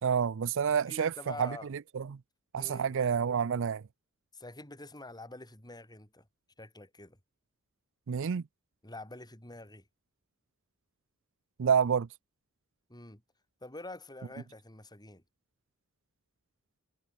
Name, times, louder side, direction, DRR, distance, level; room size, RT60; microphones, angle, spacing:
voice 1, 0.0-2.2 2.5-3.8 8.1-8.4 11.6-12.1, right 7 dB, 60° right, 0.5 m, -29 dB
voice 2, 0.9-1.7 2.5-2.9 4.3-6.3 6.6-7.2 8.8-9.9 12.9-13.2 13.6-15.2, left 2 dB, 20° left, 6.5 m, -46 dB
head